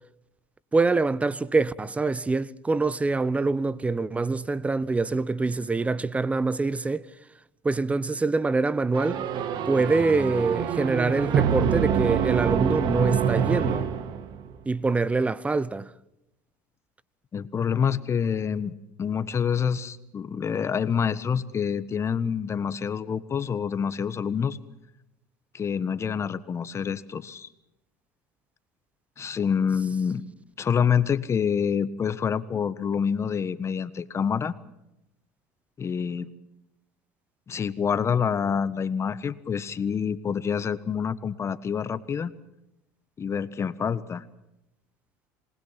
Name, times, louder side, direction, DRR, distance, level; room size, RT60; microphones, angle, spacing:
voice 1, 0.7-7.1 7.6-9.2 9.7-13.9 14.7-15.9, right 3 dB, 15° right, 0.9 m, -25 dB
sound 1, 8.9-14.5, right 8 dB, 55° right, 2.0 m, -26 dB
voice 2, 17.3-24.6 25.5-27.5 29.2-30.2 30.6-34.5 35.8-36.3 37.5-42.3 43.2-44.2, left 7 dB, 30° left, 1.4 m, -27 dB
27.0 x 20.0 x 6.0 m
supercardioid pair, 95°, 9 cm